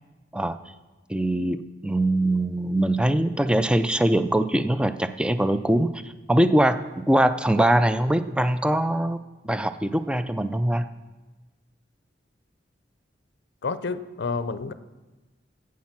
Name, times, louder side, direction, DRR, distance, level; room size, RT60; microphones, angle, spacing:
voice 1, 1.1-9.2 9.4-10.9, right 1 dB, 5° right, 11 dB, 0.3 m, -22 dB
voice 2, 13.6-14.7, left 4 dB, 60° left, 13 dB, 0.5 m, -29 dB
11.5 x 8.5 x 5.8 m, 1.2 s
head